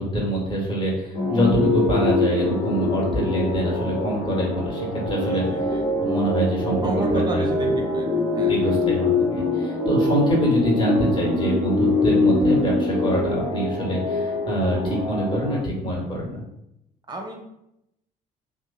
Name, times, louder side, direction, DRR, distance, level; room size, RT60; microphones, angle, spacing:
voice 1, 0.0-5.7 6.0-7.7 8.4-16.4, equal, 25° left, -4 dB, 1.1 m, -25 dB
sound 1, 1.1-15.6, left 2 dB, 80° left, 0.9 m, -23 dB
voice 2, 5.2-5.8 6.8-8.1 8.3-8.7 17.1-17.4, right 2 dB, 20° right, 2 dB, 0.7 m, -33 dB
2.8 x 2.1 x 2.3 m, 0.81 s
hypercardioid pair, 50°, 20 cm